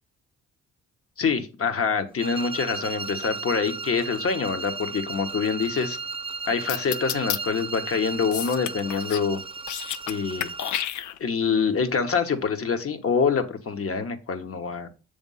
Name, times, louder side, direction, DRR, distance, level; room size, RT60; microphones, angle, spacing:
voice 1, 1.2-6.0 6.5-9.4 10.1-10.5 11.2-14.9, left 5 dB, 50° left, 8 dB, 1.3 m, -25 dB
sound 1, 2.2-10.9, right 4 dB, 20° right, 0.6 m, -35 dB
sound 2, 6.7-7.4 8.3-9.3 9.6-10.1 10.4-11.4, left 11 dB, 75° left, 0.6 m, -30 dB
7.2 x 3.5 x 5.6 m, 0.32 s
supercardioid pair, 55°, 30 cm